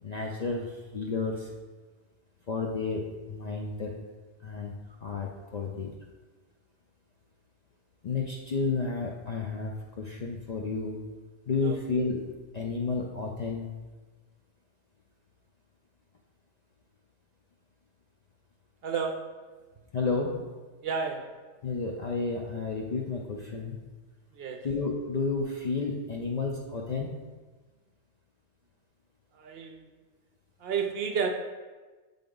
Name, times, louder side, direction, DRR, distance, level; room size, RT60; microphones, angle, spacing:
voice 1, 0.0-1.5 2.5-3.9 4.4-4.7 5.0-5.9 8.0-11.0 11.5-13.8 19.9-20.4 21.6-23.8 24.6-27.1, left 4 dB, 55° left, -1 dB, 0.4 m, -31 dB
voice 2, 18.8-19.3 20.8-21.3 24.4-24.6 29.4-29.8 30.6-31.3, right 6 dB, 65° right, 4 dB, 0.8 m, -31 dB
7.7 x 3.6 x 3.7 m, 1.3 s
omnidirectional pair, 1.2 m